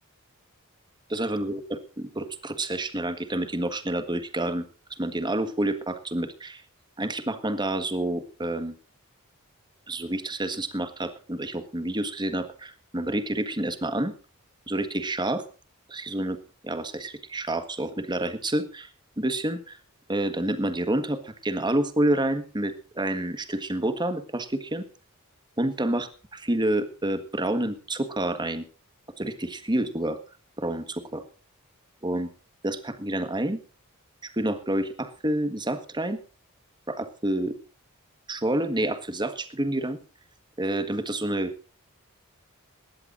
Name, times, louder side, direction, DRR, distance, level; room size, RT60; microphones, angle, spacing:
voice 1, 1.1-4.6 4.9-6.6 7.0-8.7 9.9-14.1 14.7-15.4 15.9-16.4 16.6-18.9 19.2-19.8 20.1-24.9 25.6-28.6 29.2-30.2 30.6-31.2 32.0-32.3 32.6-33.6 34.2-36.2 36.9-37.6 38.3-40.0 40.6-41.5, right 1 dB, 20° right, 10 dB, 1.6 m, -28 dB
20.0 x 16.0 x 2.6 m, 0.36 s
head